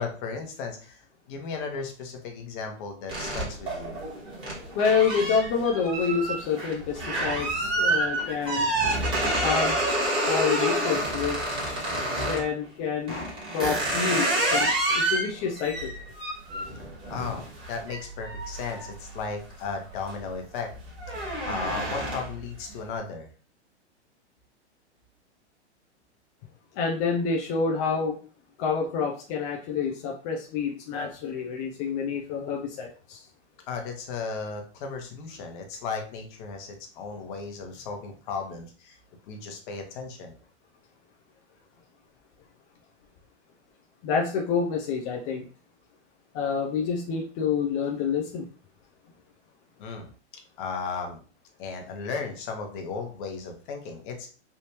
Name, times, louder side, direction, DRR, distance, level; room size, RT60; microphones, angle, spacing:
voice 1, 0.0-4.0 17.1-20.7 21.4-23.3 33.7-39.0 39.3-40.3 49.8-50.1 50.6-51.2 51.6-54.3, left 5 dB, 45° left, 3 dB, 1.0 m, -35 dB
sound 1, 3.1-12.5 13.1-19.5 19.9-20.3 20.6-22.4, right 1 dB, 15° right, 1.4 m, -28 dB
voice 2, 4.7-8.7 9.4-9.8 10.3-15.9 26.7-28.2 28.6-33.2 44.0-45.4 46.3-48.5, left 5 dB, 25° left, -1 dB, 0.4 m, -28 dB
3.4 x 2.7 x 2.9 m, 0.40 s
hypercardioid pair, 120°, 35 cm